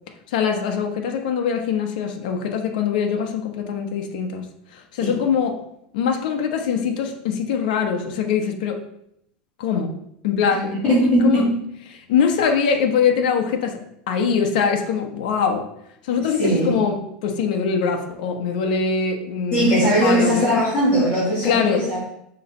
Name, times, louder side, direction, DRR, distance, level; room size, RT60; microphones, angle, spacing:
voice 1, 0.3-4.5 4.7-5.6 5.9-8.8 9.6-9.9 10.2-10.7 11.2-11.4 11.9-13.8 14.1-15.7 16.0-19.7 20.0-20.5 21.4-21.8, left 6 dB, 80° left, 4 dB, 1.0 m, -22 dB
voice 2, 10.5-11.5 16.4-16.8 19.5-22.0, equal, 25° left, -8 dB, 2.3 m, -19 dB
6.8 x 3.2 x 5.3 m, 0.75 s
supercardioid pair, 135°, 4 cm